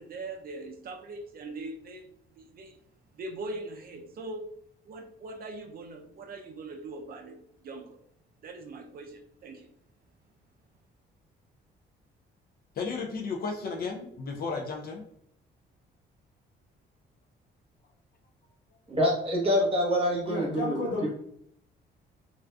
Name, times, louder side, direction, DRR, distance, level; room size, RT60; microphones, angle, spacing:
voice 1, 0.0-2.8 3.1-4.5 4.8-8.0 8.4-9.7, right 2 dB, 50° right, 3 dB, 0.4 m, -41 dB
voice 2, 12.8-15.0, left 4 dB, 50° left, 2 dB, 0.4 m, -34 dB
voice 3, 18.9-21.1, equal, 30° right, -3 dB, 1.0 m, -26 dB
voice 4, 20.3-21.1, left 2 dB, 75° left, -3 dB, 1.1 m, -32 dB
2.4 x 2.3 x 2.2 m, 0.69 s
cardioid pair, 90°, 20 cm